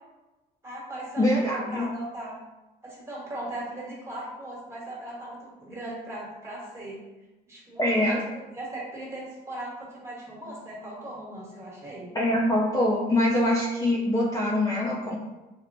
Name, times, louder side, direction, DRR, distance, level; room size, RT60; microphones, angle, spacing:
voice 1, 0.6-2.4 2.8-7.0 7.5-8.2 8.5-12.1, right 1 dB, 15° right, -6 dB, 1.3 m, -38 dB
voice 2, 1.2-1.9 7.8-8.2 12.1-15.2, left 1 dB, 20° left, -5 dB, 0.5 m, -24 dB
4.3 x 2.1 x 2.6 m, 1.1 s
cardioid pair, 110°, 17 cm